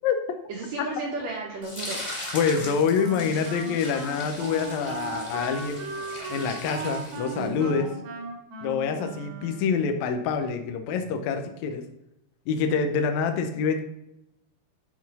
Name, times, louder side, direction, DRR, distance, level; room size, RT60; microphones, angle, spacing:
voice 1, 0.5-2.0 7.3-8.0, right 2 dB, 75° right, -1 dB, 1.6 m, -33 dB
sound 1, 1.6-7.7, left 1 dB, 30° left, 0.8 m, -39 dB
voice 2, 2.3-5.9 6.3-7.9 8.6-11.8 12.5-13.8, left 6 dB, 85° left, 6 dB, 1.6 m, -26 dB
Wind instrument woodwind instrument, 2.5-9.9, right 3 dB, 90° right, 3.3 m, -38 dB
9.8 x 4.1 x 4.1 m, 0.83 s
omnidirectional pair, 4.3 m